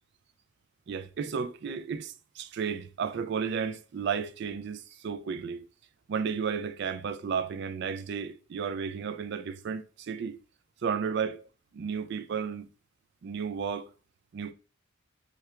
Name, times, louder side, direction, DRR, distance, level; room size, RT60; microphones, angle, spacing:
voice 1, 0.9-5.7 6.1-10.4 10.8-11.4 11.7-12.7 13.2-13.9 14.3-14.5, right 6 dB, 55° right, 0.3 m, -33 dB
5.6 x 2.3 x 2.3 m
head